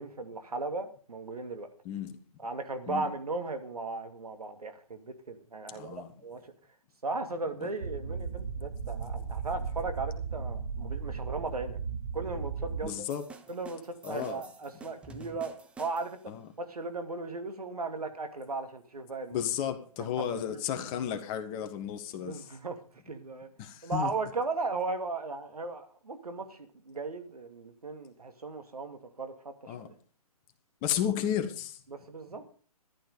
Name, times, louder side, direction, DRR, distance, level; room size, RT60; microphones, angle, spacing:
voice 1, 0.0-1.7 2.4-6.4 7.0-11.8 12.1-13.0 13.5-16.2 16.6-19.4 20.2-20.6 22.2-23.5 23.8-29.3 29.6-29.9 31.9-32.5, right 3 dB, 80° right, 2.6 m, -37 dB
voice 2, 5.7-6.1 7.6-7.7 12.8-13.2 14.0-14.4 16.3-16.5 19.3-22.5 23.6-24.1 29.7-29.9 30.8-31.8, left 9 dB, 25° left, 1.6 m, -33 dB
sound 1, 7.8-12.8, right 5 dB, 60° right, 2.2 m, -36 dB
sound 2, 13.1-16.3, right 4 dB, 5° right, 0.8 m, -50 dB
14.0 x 12.0 x 5.1 m
figure-of-eight pair, 135°, 19 cm